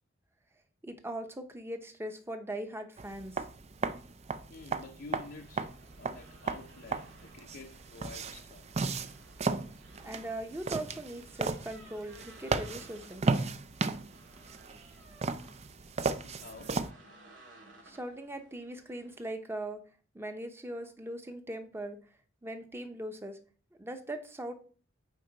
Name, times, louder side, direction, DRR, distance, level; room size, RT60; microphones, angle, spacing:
voice 1, 0.8-3.4 10.0-13.2 17.8-19.8 20.1-22.0 22.4-23.4 23.8-24.5, right 1 dB, 10° right, 0.9 m, -40 dB
sound 1, 3.0-16.9, right 4 dB, 35° right, 0.5 m, -35 dB
voice 2, 4.5-8.7 16.2-16.8, left 3 dB, 55° left, 0.6 m, -49 dB
sound 2, 5.1-19.3, right 2 dB, 70° right, 1.8 m, -58 dB
8.3 x 4.7 x 4.0 m
head